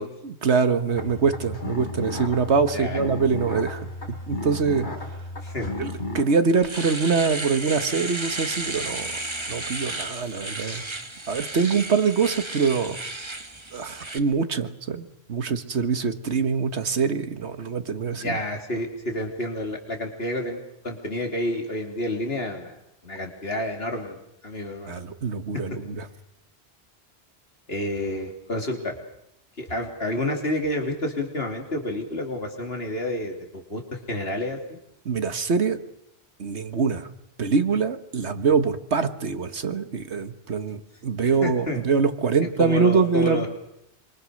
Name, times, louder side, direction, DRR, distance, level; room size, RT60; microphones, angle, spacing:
voice 1, 0.2-3.9 4.3-4.9 5.8-9.1 9.5-10.8 11.3-13.0 13.7-18.3 24.9-26.1 35.1-35.8 36.4-37.1 37.4-43.5, right 5 dB, 80° right, 10 dB, 1.8 m, -24 dB
sound 1, 1.0-6.2, left 1 dB, 45° left, 3.9 m, -33 dB
voice 2, 5.4-5.7 18.1-20.6 20.8-22.8 23.0-25.0 27.7-28.9 29.6-33.8 34.1-34.8 41.4-41.8 42.4-43.5, left 1 dB, 65° left, 3 dB, 3.6 m, -29 dB
Domestic sounds home sounds, 6.4-14.2, right 2 dB, 25° right, 1.7 m, -33 dB
26.0 x 25.0 x 6.5 m, 0.80 s
omnidirectional pair, 1.1 m